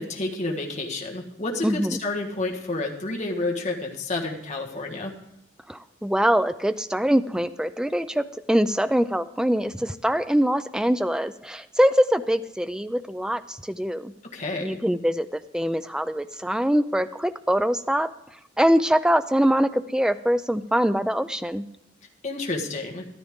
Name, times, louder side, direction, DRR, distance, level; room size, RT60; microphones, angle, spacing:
voice 1, 0.0-5.1 14.3-14.8 22.2-23.1, left 2 dB, 35° left, 1 dB, 1.5 m, -30 dB
voice 2, 1.6-2.0 5.7-14.1 14.6-18.1 18.6-21.7, equal, 5° right, 12 dB, 0.3 m, -23 dB
13.5 x 12.0 x 3.6 m, 0.79 s
head